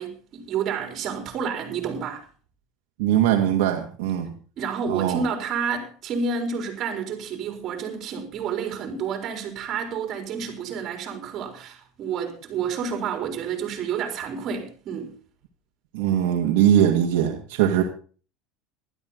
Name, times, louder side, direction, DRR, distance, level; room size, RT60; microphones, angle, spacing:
voice 1, 0.0-2.3 4.6-15.1, right 6 dB, 40° right, 4.3 m, -30 dB
voice 2, 3.0-4.3 4.9-5.2 15.9-17.8, right 10 dB, 80° right, 2.3 m, -21 dB
16.0 x 12.5 x 4.1 m
supercardioid pair, 130°, 0 cm